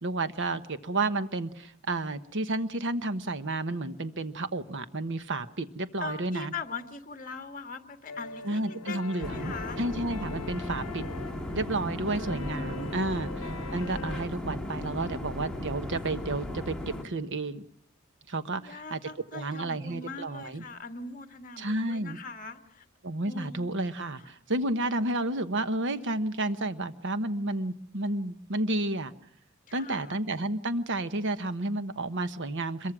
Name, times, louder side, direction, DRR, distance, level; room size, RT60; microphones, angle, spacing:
voice 1, 0.0-6.5 8.4-11.0 11.5-17.6 18.3-19.0 19.3-20.6 21.6-22.2 23.0-29.1 29.7-32.9, right 2 dB, 55° right, 11 dB, 1.2 m, -31 dB
voice 2, 6.0-9.8 11.9-13.3 18.5-22.9 23.2-23.7 24.2-24.3 24.6-25.0 29.7-30.2, left 3 dB, 40° left, 7 dB, 1.6 m, -42 dB
sound 1, 8.1-14.3, left 5 dB, 75° left, 0.9 m, -43 dB
sound 2, 9.2-17.0, left 1 dB, 5° left, 2.3 m, -36 dB
26.0 x 22.5 x 6.2 m, 0.69 s
head